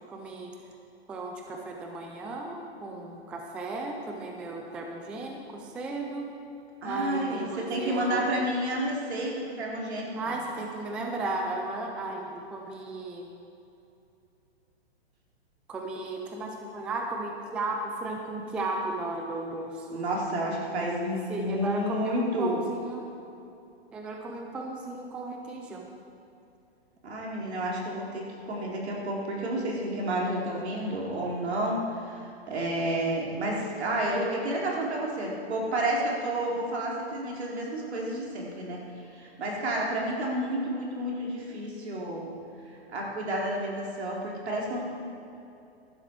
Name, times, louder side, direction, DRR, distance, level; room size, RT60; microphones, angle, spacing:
voice 1, 0.1-0.5 1.1-6.3 6.8-8.3 10.2-13.3 15.7-20.1 20.6-23.1 23.9-25.9, right 2 dB, 5° right, 2 dB, 0.3 m, -35 dB
voice 2, 6.8-10.4 19.9-22.6 27.0-38.8 39.1-42.3 42.9-44.8, right 1 dB, 80° right, -2 dB, 3.8 m, -30 dB
14.5 x 11.5 x 4.6 m, 2.7 s
hypercardioid pair, 145°, 32 cm